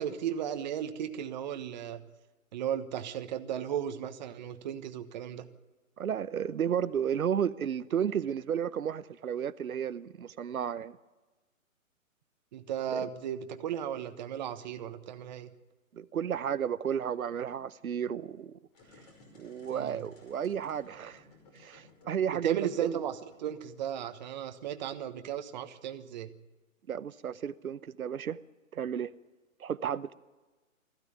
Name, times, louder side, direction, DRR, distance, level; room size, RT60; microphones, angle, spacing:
voice 1, 0.0-2.0 2.5-5.5 12.5-15.5 19.7-20.0 22.3-26.3, right 9 dB, 30° right, 1.2 m, -35 dB
voice 2, 6.0-11.0 12.9-13.0 15.9-18.5 19.4-21.2 21.5-23.0 26.9-28.4 28.7-29.1 29.6-30.1, right 8 dB, 85° right, 0.9 m, -32 dB
sound 1, 18.7-24.5, left 2 dB, 30° left, 5.3 m, -59 dB
20.5 x 15.0 x 9.8 m
hypercardioid pair, 155°, 41 cm